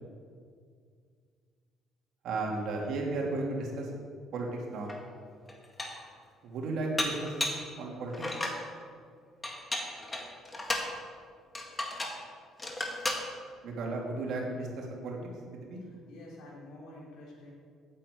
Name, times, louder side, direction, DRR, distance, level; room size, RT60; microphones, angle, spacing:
voice 1, 2.2-3.9 4.3-4.9 6.4-7.4 7.8-8.1 13.6-15.2 15.6-15.8, right 2 dB, 65° right, -1 dB, 3.0 m, -34 dB
Dishes pots and pans, 4.9-5.0 5.5-6.1 7.0-7.7 8.1-8.6 9.4-10.9 11.5-12.2 12.6-13.3, left 1 dB, 15° left, 1.9 m, -34 dB
voice 2, 16.1-17.5, left 1 dB, 70° left, -4 dB, 3.2 m, -48 dB
8.9 x 8.5 x 8.5 m, 2.1 s
cardioid pair, 105°, 0 cm